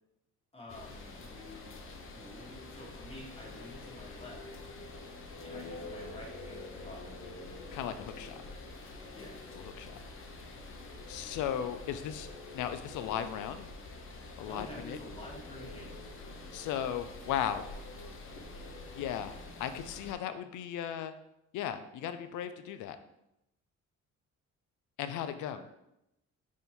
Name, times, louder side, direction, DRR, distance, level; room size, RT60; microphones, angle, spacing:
voice 1, 0.5-1.8 2.1-4.5 5.4-7.4 9.1-9.5 14.4-15.9 25.5-25.6, left 1 dB, 20° left, -2 dB, 1.2 m, -49 dB
sound 1, 0.7-20.1, left 2 dB, 45° left, 0.7 m, -46 dB
voice 2, 7.7-8.4 9.6-9.9 11.1-12.3 12.5-13.7 14.4-15.0 16.5-17.7 18.9-21.2 21.5-23.0 25.0-25.6, left 9 dB, 80° left, 10 dB, 0.4 m, -36 dB
3.5 x 2.7 x 4.2 m, 0.85 s
cardioid pair, 90°, 30 cm